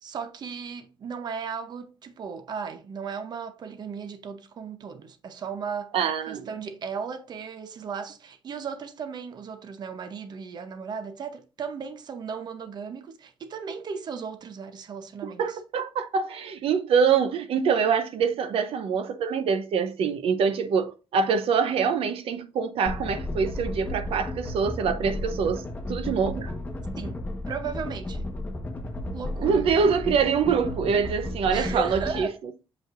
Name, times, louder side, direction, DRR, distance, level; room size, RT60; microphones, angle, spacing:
voice 1, 0.0-5.9 6.3-15.6 27.0-27.2 27.5-28.3 29.1-29.6 31.5-32.4, right 6 dB, 50° right, 0.7 m, -36 dB
voice 2, 5.9-6.5 15.2-26.5 29.4-32.5, right 6 dB, 85° right, 0.7 m, -25 dB
sound 1, 22.9-32.2, left 1 dB, 15° left, 1.1 m, -33 dB
7.1 x 5.3 x 2.5 m
wide cardioid pair, 160°, 10 cm